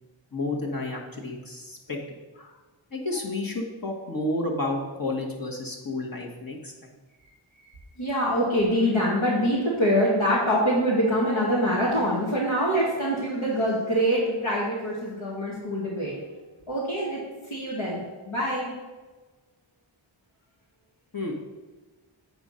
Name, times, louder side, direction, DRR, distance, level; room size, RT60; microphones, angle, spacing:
voice 1, 0.3-2.0 2.3-2.5 2.9-6.7 21.1-21.3, left 2 dB, 45° left, -1 dB, 1.6 m, -31 dB
voice 2, 8.0-16.2 16.7-17.2 17.5-18.0 18.3-18.7, equal, 75° left, -7 dB, 1.8 m, -24 dB
7.9 x 4.5 x 5.6 m, 1.3 s
wide cardioid pair, 45°, 48 cm